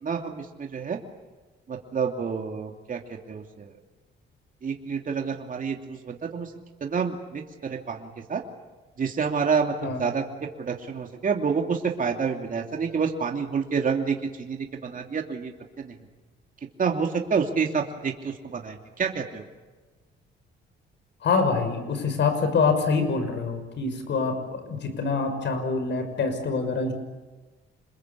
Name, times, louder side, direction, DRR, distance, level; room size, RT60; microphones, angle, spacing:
voice 1, 0.0-1.0 1.7-3.0 3.3-3.7 4.6-6.5 6.8-8.4 9.0-10.2 10.6-15.9 16.8-19.4, right 5 dB, 45° right, 3 dB, 2.8 m, -28 dB
voice 2, 21.2-26.9, left 4 dB, 65° left, 8 dB, 6.1 m, -25 dB
27.5 x 21.5 x 8.4 m, 1.2 s
cardioid pair, 90°, 20 cm